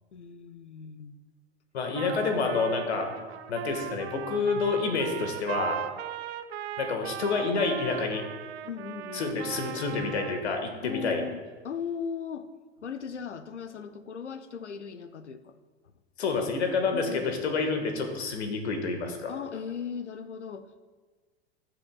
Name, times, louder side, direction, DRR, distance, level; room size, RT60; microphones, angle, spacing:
voice 1, 0.1-1.1 3.2-3.3 8.6-9.4 10.8-12.5 12.8-15.6 16.9-17.5 19.3-20.9, left 6 dB, 85° left, 11 dB, 0.7 m, -38 dB
voice 2, 1.7-3.1 3.5-5.8 6.8-8.2 9.1-11.2 16.2-19.3, left 4 dB, 70° left, 5 dB, 1.6 m, -28 dB
Trumpet, 1.9-10.5, right 11 dB, 65° right, 0.6 m, -38 dB
14.5 x 7.7 x 2.3 m, 1.4 s
figure-of-eight pair, 95°, 34 cm